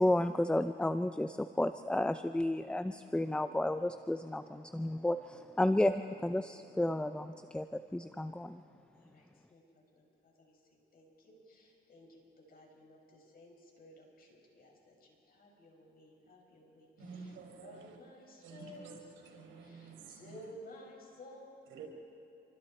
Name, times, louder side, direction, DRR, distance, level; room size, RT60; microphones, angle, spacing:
voice 1, 0.0-8.6, left 1 dB, 5° left, 10 dB, 0.6 m, -32 dB
voice 2, 8.9-10.6 10.9-16.9 17.2-17.3 17.6-18.9 19.6-21.5, left 1 dB, 50° left, 0 dB, 6.1 m, -55 dB
voice 3, 17.0-18.0 18.4-20.4 21.7-21.9, right 5 dB, 85° right, 1 dB, 5.4 m, -50 dB
28.0 x 25.5 x 4.4 m, 2.6 s
cardioid pair, 90°, 20 cm